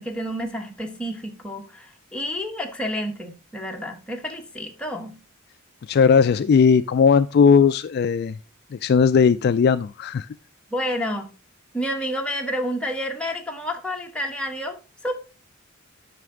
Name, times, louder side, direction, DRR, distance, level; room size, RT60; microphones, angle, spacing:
voice 1, 0.0-5.1 10.7-11.3 11.7-15.2, equal, 5° left, 1.2 m, -29 dB
voice 2, 5.9-8.4 8.7-10.3, left 6 dB, 50° left, 0.3 m, -17 dB
9.2 x 5.9 x 3.7 m
head